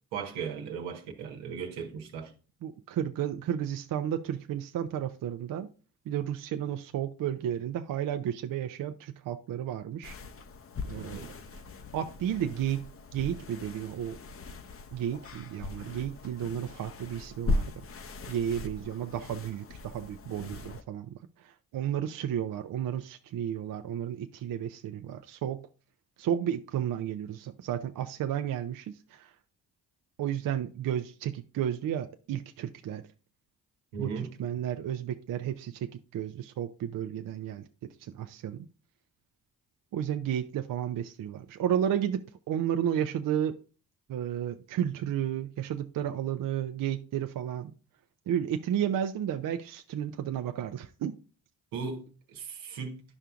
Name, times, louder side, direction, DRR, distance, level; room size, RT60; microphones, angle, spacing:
voice 1, 0.1-2.3 10.9-11.3 33.9-34.3 51.7-53.0, right 5 dB, 70° right, 1.2 m, -37 dB
voice 2, 2.6-5.7 6.1-10.2 10.8-11.3 11.9-14.2 14.9-17.8 18.3-25.7 26.2-29.3 30.2-33.0 34.0-38.7 39.9-43.6 44.1-47.7 48.3-51.2, right 10 dB, 45° right, 0.6 m, -32 dB
sound 1, 10.0-20.8, left 2 dB, 30° left, 0.7 m, -38 dB
10.5 x 5.5 x 2.4 m
hypercardioid pair, 40°, 47 cm